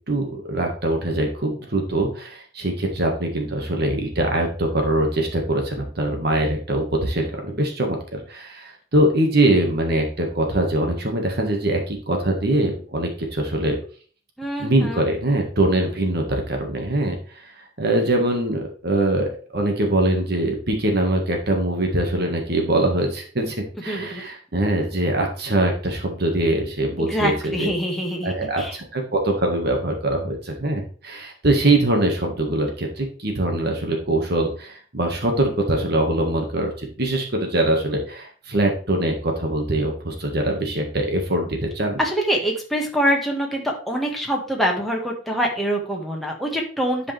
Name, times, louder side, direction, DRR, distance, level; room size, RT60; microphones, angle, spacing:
voice 1, 0.1-13.8 14.6-23.6 23.8-27.7 28.2-42.0, right 1 dB, 55° right, 3 dB, 1.6 m, -23 dB
voice 2, 14.4-15.0 23.9-24.2 27.1-28.8 42.0-47.1, equal, ahead, -1 dB, 1.5 m, -25 dB
10.5 x 5.1 x 3.4 m, 0.41 s
head